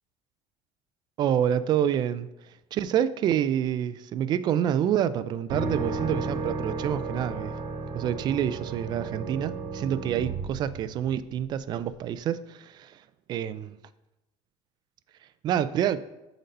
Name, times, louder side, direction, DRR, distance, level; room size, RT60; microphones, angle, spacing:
voice 1, 1.2-2.3 2.7-7.6 7.9-13.0 13.3-13.8 15.4-16.0, right 10 dB, 35° right, 15 dB, 0.3 m, -27 dB
sound 1, 5.5-11.4, right 4 dB, 60° right, 1.2 m, -33 dB
8.1 x 4.0 x 5.3 m, 0.97 s
cardioid pair, 150°, 12 cm